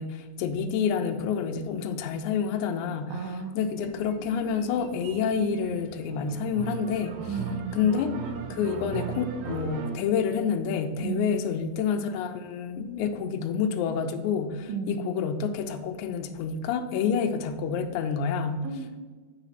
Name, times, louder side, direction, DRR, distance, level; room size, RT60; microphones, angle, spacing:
voice 1, 0.0-7.2 7.7-8.1 8.5-18.7, left 6 dB, 80° left, 6 dB, 1.9 m, -28 dB
voice 2, 3.1-3.6 7.3-7.7 11.0-11.5 14.7-15.1 18.6-19.0, right 4 dB, 90° right, 3 dB, 2.5 m, -33 dB
sound 1, 3.8-10.0, right 6 dB, 75° right, 2.0 m, -38 dB
8.3 x 3.0 x 5.7 m, 1.4 s
omnidirectional pair, 3.6 m